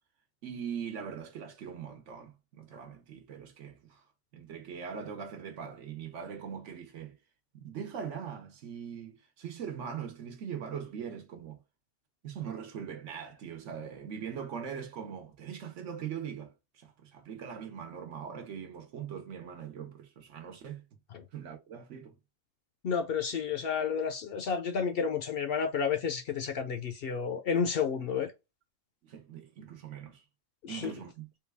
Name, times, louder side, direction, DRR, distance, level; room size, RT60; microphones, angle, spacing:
voice 1, 0.4-4.0 4.3-7.2 7.5-11.6 12.2-20.8 21.3-22.2 29.0-30.2 30.7-31.3, right 7 dB, 75° right, 1.1 m, -41 dB
voice 2, 22.8-28.3 30.6-30.9, left 6 dB, 60° left, 0.6 m, -31 dB
3.8 x 2.3 x 3.3 m
omnidirectional pair, 1.3 m